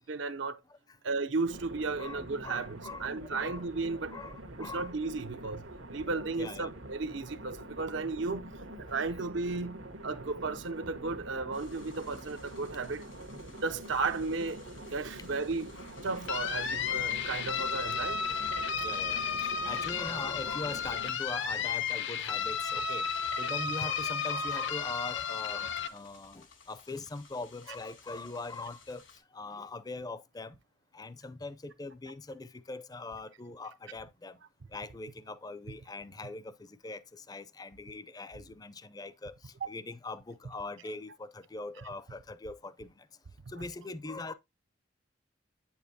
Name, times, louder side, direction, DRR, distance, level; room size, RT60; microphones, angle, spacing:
voice 1, 0.1-0.6 1.0-4.2 4.6-8.5 8.8-13.0 13.6-15.7 16.0-18.3, right 3 dB, 65° right, 0.6 m, -34 dB
sound 1, 1.4-21.1, right 1 dB, 85° right, 1.4 m, -46 dB
voice 2, 2.0-3.7 4.1-4.9 6.1-6.7 13.3-13.4 18.8-23.1 23.4-29.0 29.3-30.6 30.9-34.4 34.7-43.1 43.5-44.3, left 3 dB, 20° left, 0.5 m, -42 dB
sound 2, 11.5-29.2, left 5 dB, 90° left, 2.5 m, -57 dB
sound 3, 16.3-25.9, left 6 dB, 65° left, 0.7 m, -33 dB
8.8 x 7.1 x 2.8 m
head